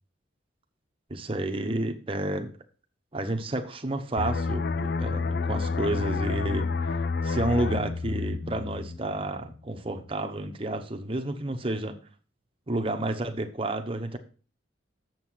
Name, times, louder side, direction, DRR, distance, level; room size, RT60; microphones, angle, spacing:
voice 1, 1.1-2.5 3.1-12.0 12.7-14.2, right 1 dB, 30° right, 5 dB, 0.9 m, -31 dB
sound 1, 4.2-9.6 9.9-10.1, left 4 dB, 50° left, 0.4 m, -29 dB
7.4 x 5.7 x 6.2 m, 0.39 s
head